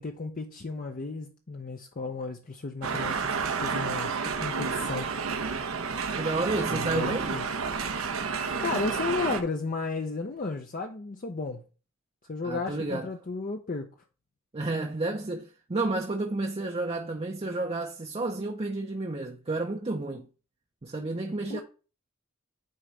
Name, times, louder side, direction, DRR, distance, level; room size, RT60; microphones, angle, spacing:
voice 1, 0.0-3.3 3.6-5.1 6.7-7.5 8.6-11.6 12.3-13.9 21.5-21.6, left 3 dB, 40° left, 0.6 m, -34 dB
sound 1, 2.8-9.4, right 5 dB, 85° right, 0.9 m, -30 dB
voice 2, 6.2-7.3 12.4-13.1 14.5-20.3 20.8-21.6, right 2 dB, 30° right, 0.6 m, -31 dB
9.4 x 3.9 x 3.2 m
head